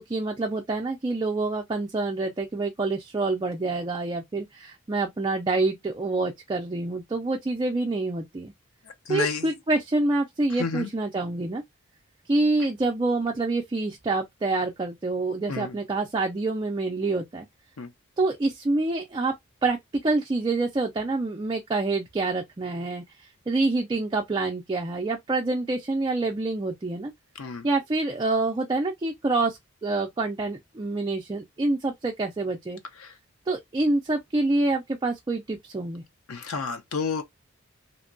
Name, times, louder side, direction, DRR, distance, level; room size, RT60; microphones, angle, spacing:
voice 1, 0.0-8.5 9.1-11.6 12.3-17.5 18.2-19.3 19.6-19.8 20.0-27.1 27.6-32.8 33.5-36.0, right 2 dB, 20° right, 0.3 m, -27 dB
voice 2, 9.1-9.5 10.6-10.9 15.5-15.8 17.8-17.9 27.4-27.7 33.0-33.1 36.3-37.2, left 4 dB, 85° left, 0.6 m, -30 dB
2.8 x 2.2 x 2.5 m
head